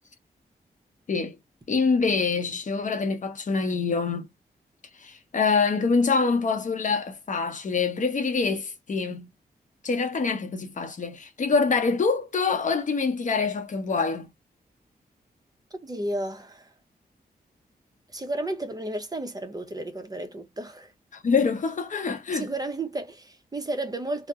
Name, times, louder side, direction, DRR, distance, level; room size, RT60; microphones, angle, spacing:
voice 1, 1.7-4.3 5.0-9.3 9.8-14.3 21.1-22.5, left 4 dB, 50° left, 0.7 m, -25 dB
voice 2, 15.7-16.7 18.1-20.9 22.3-24.3, right 2 dB, 25° right, 0.6 m, -32 dB
2.8 x 2.0 x 3.4 m
wide cardioid pair, 100°, 16 cm